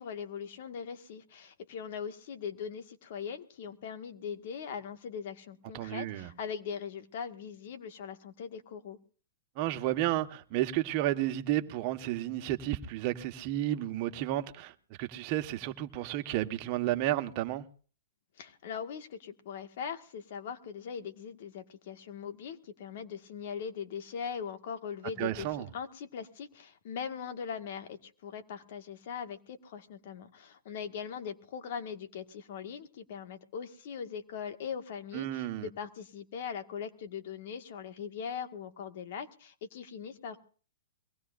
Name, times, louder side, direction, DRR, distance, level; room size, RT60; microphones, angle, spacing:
voice 1, 0.0-9.0 18.4-40.4, left 7 dB, 60° left, 1.9 m, -40 dB
voice 2, 5.7-6.3 9.6-14.7 15.0-17.7 25.2-25.7 35.1-35.7, right 14 dB, 45° right, 1.4 m, -32 dB
23.0 x 18.5 x 2.6 m
hypercardioid pair, 125°, 0 cm